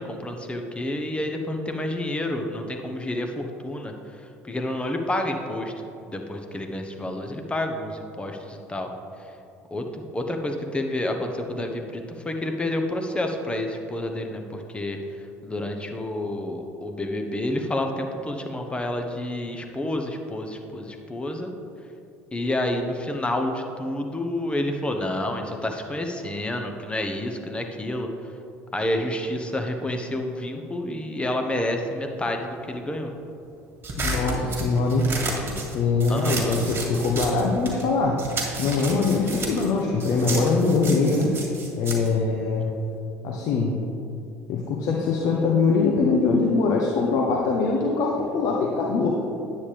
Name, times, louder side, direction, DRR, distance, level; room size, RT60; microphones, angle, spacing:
voice 1, 0.0-3.9 4.4-5.7 6.1-8.9 9.7-15.0 15.4-21.5 22.3-28.1 28.7-33.1 36.1-36.7, left 1 dB, 15° left, 4 dB, 1.1 m, -29 dB
sound 1, 33.8-37.9 38.2-43.0, right 2 dB, 30° right, 2.0 m, -32 dB
voice 2, 34.0-35.1 35.7-38.2 38.6-41.4 41.8-42.7 43.2-43.8 44.5-49.2, left 4 dB, 60° left, 0 dB, 0.9 m, -22 dB
9.7 x 8.6 x 3.4 m, 2.7 s
hypercardioid pair, 70°, 7 cm